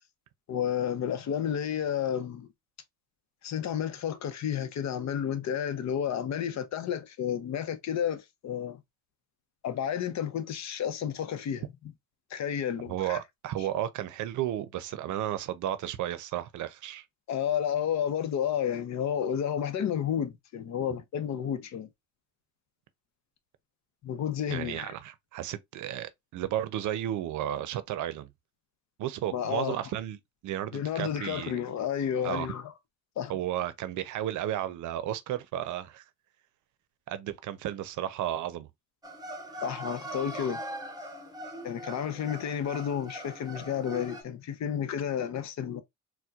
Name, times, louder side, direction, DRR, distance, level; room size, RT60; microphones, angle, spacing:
voice 1, 0.5-2.5 3.4-8.8 9.6-11.6 12.3-13.2 17.3-21.9 24.0-24.9 29.3-29.8 30.7-32.7 33.2-33.3 39.6-40.6 41.6-45.8, left 9 dB, 65° left, 0.7 m, -31 dB
voice 2, 12.9-17.0 24.5-28.3 29.0-30.2 30.4-31.5 32.2-32.5 33.3-36.0 37.1-38.7, right 12 dB, 75° right, 0.6 m, -33 dB
sound 1, 39.0-44.2, right 1 dB, 15° right, 0.9 m, -41 dB
4.3 x 2.2 x 2.3 m
cardioid pair, 90°, 30 cm